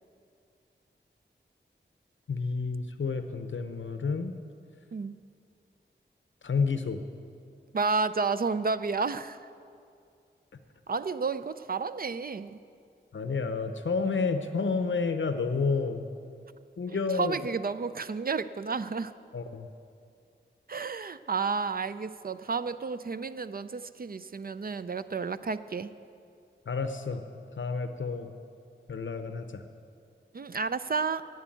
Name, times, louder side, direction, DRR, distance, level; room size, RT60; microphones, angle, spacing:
voice 1, 2.3-4.3 6.4-7.0 13.1-16.0 16.8-17.4 19.3-19.7 26.7-27.2 27.6-28.3 28.9-29.6, left 4 dB, 85° left, 8 dB, 0.7 m, -30 dB
voice 2, 7.7-9.4 10.9-12.6 16.9-19.1 20.7-25.9 30.3-31.3, right 4 dB, 50° right, 13 dB, 0.4 m, -31 dB
11.5 x 8.2 x 9.0 m, 2.4 s
wide cardioid pair, 75°, 19 cm